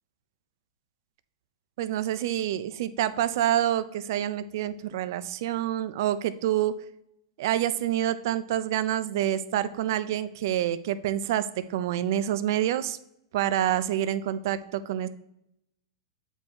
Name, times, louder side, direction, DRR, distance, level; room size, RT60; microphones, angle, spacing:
voice 1, 1.8-6.7 7.4-13.0 13.3-15.1, right 12 dB, 45° right, 14 dB, 0.4 m, -27 dB
8.0 x 4.4 x 2.8 m, 0.80 s
supercardioid pair, 175°, 3 cm